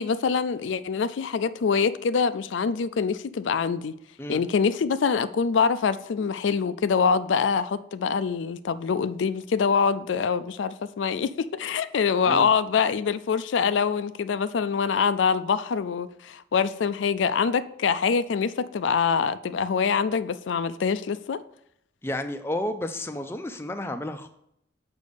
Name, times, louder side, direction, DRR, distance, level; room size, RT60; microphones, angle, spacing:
voice 1, 0.0-3.9 4.3-21.4, left 6 dB, 80° left, 0.4 m, -25 dB
voice 2, 22.0-24.3, left 1 dB, 15° left, 0.4 m, -31 dB
6.6 x 5.2 x 5.2 m
head